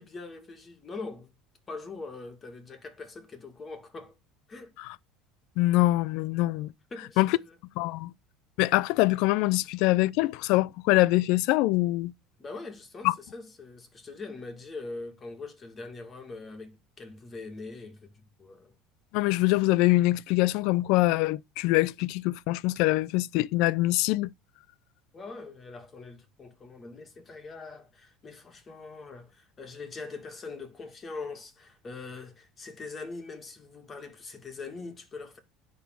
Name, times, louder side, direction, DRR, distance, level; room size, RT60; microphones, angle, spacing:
voice 1, 0.0-1.3 1.7-4.1 4.5-4.7 6.9-7.5 12.4-18.7 25.1-35.4, left 3 dB, 25° left, 2.2 m, -42 dB
voice 2, 5.6-6.7 7.2-7.4 7.8-8.1 8.6-12.1 13.0-13.1 19.1-24.3, left 19 dB, 70° left, 0.4 m, -24 dB
10.0 x 3.6 x 6.0 m
supercardioid pair, 110°, 0 cm